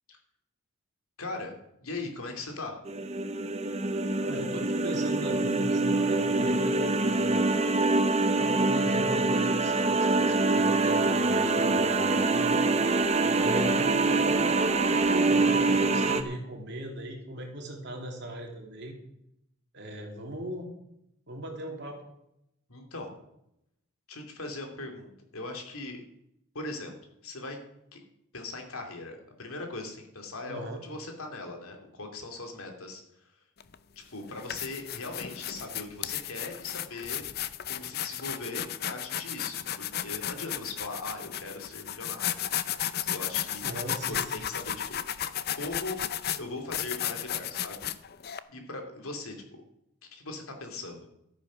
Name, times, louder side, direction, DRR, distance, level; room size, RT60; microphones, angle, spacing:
voice 1, 1.2-2.8 22.7-23.1 24.1-26.0 26.5-26.9 27.2-27.6 27.9-28.0 28.3-33.3 34.1-37.2 37.7-42.3 43.0-43.6 44.1-45.0 45.5-46.0 46.4-47.9 48.5-49.6 50.1-51.1, left 2 dB, 75° left, 3 dB, 2.7 m, -39 dB
sound 1, 2.9-16.2, right 3 dB, 30° right, 0.8 m, -25 dB
voice 2, 4.2-7.5 8.2-12.6 13.2-18.9 19.7-20.7 21.3-22.0 30.5-30.8 43.6-44.5, right 1 dB, 50° right, 1 dB, 2.8 m, -38 dB
sound 2, 33.6-33.7 34.3-48.4, left 10 dB, 45° left, 0.5 m, -34 dB
13.0 x 9.3 x 6.2 m, 0.80 s
head